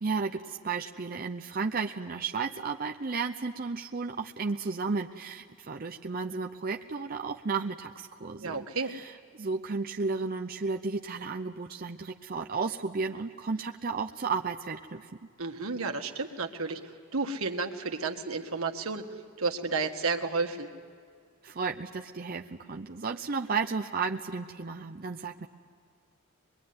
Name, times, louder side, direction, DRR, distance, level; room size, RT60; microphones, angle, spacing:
voice 1, 0.0-15.1 21.4-25.5, right 4 dB, 45° right, 3 dB, 0.7 m, -33 dB
voice 2, 8.4-8.9 15.4-19.1 19.4-20.7, right 4 dB, 85° right, 5 dB, 1.7 m, -32 dB
24.5 x 22.0 x 9.5 m, 2.1 s
head